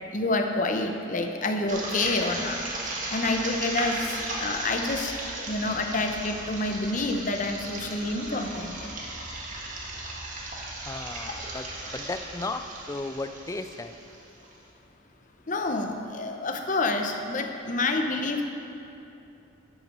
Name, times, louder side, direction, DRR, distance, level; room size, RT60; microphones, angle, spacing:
voice 1, 0.1-2.6 3.1-4.0 4.4-5.1 5.5-8.9 15.5-18.4, left 2 dB, 40° left, 4 dB, 0.7 m, -28 dB
sound 1, 1.7-14.5, right 2 dB, 40° right, 1.4 m, -36 dB
voice 2, 10.8-13.9, left 2 dB, 15° left, 9 dB, 0.3 m, -35 dB
10.5 x 6.0 x 6.6 m, 2.8 s
head